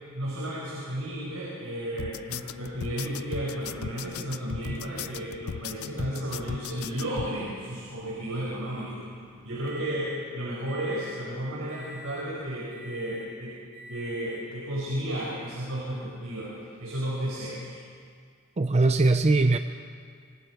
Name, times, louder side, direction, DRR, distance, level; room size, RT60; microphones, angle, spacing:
voice 1, 0.1-9.0 9.4-13.5 13.8-16.5 16.8-17.7, right 1 dB, 80° right, -6 dB, 5.1 m, -33 dB
sound 1, 2.0-7.3, left 7 dB, 75° left, 0.5 m, -37 dB
Microwave oven, 4.6-10.3 10.7-11.3 11.7-12.3 12.7-13.3 13.7-14.6 15.5-15.6 17.6-17.7, left 1 dB, 60° right, 4.2 m, -48 dB
voice 2, 18.6-19.6, right 2 dB, 30° right, 9 dB, 0.6 m, -21 dB
26.0 x 24.5 x 4.7 m, 2.1 s
head